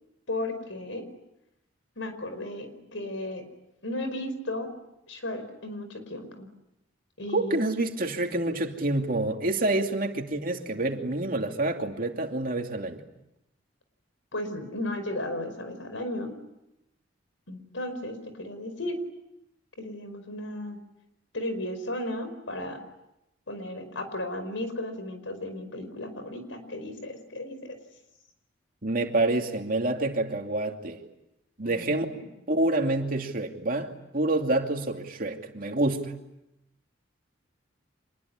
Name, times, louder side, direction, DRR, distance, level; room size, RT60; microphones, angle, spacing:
voice 1, 0.3-1.1 1.9-3.5 3.8-4.7 5.1-6.5 7.2-7.6 14.3-16.3 17.5-19.0 19.8-20.8 21.3-22.8 23.5-27.8 31.6-32.2, left 1 dB, 90° left, 9 dB, 5.1 m, -35 dB
voice 2, 7.3-13.0 28.8-31.0 31.6-32.0 32.5-36.1, right 2 dB, 45° right, 4 dB, 2.7 m, -27 dB
26.5 x 21.5 x 9.8 m, 0.87 s
head